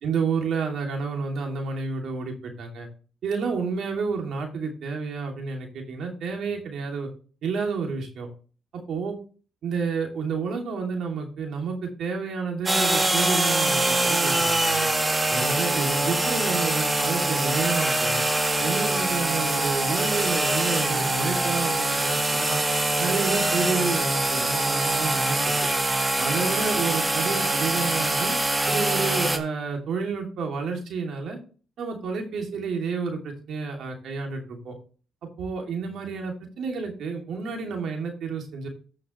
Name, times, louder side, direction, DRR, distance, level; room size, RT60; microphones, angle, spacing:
voice 1, 0.0-2.9 3.2-7.1 7.4-8.3 8.9-9.2 9.6-14.9 15.3-18.2 18.6-22.6 23.0-25.5 26.2-28.4 28.7-31.4 31.8-34.7 35.4-38.7, right 5 dB, 70° right, 2 dB, 2.7 m, -30 dB
sound 1, 12.7-29.4, right 2 dB, 20° right, 1.5 m, -24 dB
15.0 x 5.9 x 3.2 m, 0.39 s
cardioid pair, 90°, 0 cm